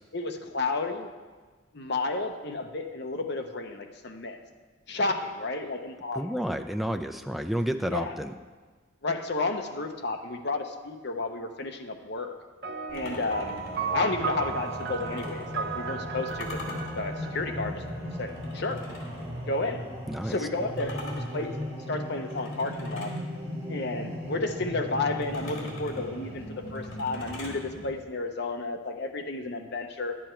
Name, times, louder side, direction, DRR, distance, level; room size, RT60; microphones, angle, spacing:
voice 1, 0.1-1.1 1.7-4.4 4.9-6.2 7.9-8.1 9.0-12.3 12.9-13.6 13.9-16.5 16.9-17.8 18.2-18.8 19.5-19.8 20.2-23.1 23.7-30.2, left 3 dB, 55° left, 5 dB, 0.9 m, -32 dB
voice 2, 6.1-8.3 20.1-20.3, equal, ahead, 6 dB, 0.4 m, -30 dB
sound 1, 12.6-18.4, right 6 dB, 55° right, 0.8 m, -36 dB
sound 2, 12.9-15.5 16.3-19.3 20.8-23.2 25.2-27.6, left 2 dB, 70° left, 2.3 m, -44 dB
sound 3, 12.9-27.9, equal, 20° right, 3.6 m, -37 dB
11.0 x 8.7 x 4.5 m, 1.4 s
head